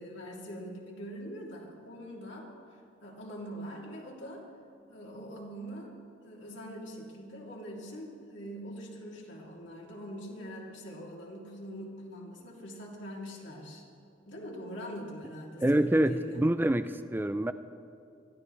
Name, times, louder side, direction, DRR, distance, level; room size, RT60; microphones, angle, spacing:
voice 1, 0.0-2.5 3.0-4.4 4.9-6.0 6.2-13.8 14.3-16.4, equal, 65° left, -3 dB, 2.9 m, -43 dB
voice 2, 15.6-17.5, right 1 dB, 10° right, 11 dB, 0.4 m, -26 dB
23.0 x 14.5 x 3.3 m, 2.6 s
head